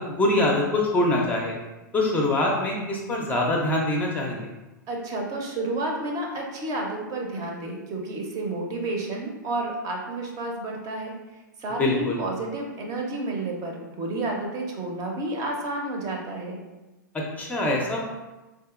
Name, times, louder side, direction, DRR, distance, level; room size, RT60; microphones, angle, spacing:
voice 1, 0.0-1.6 1.9-4.5 11.8-12.2 17.1-18.0, left 1 dB, 15° left, -1 dB, 0.5 m, -24 dB
voice 2, 4.9-11.1 11.6-16.6, right 2 dB, 35° right, 1 dB, 0.7 m, -31 dB
3.7 x 2.7 x 2.4 m, 1.1 s
hypercardioid pair, 105°, 11 cm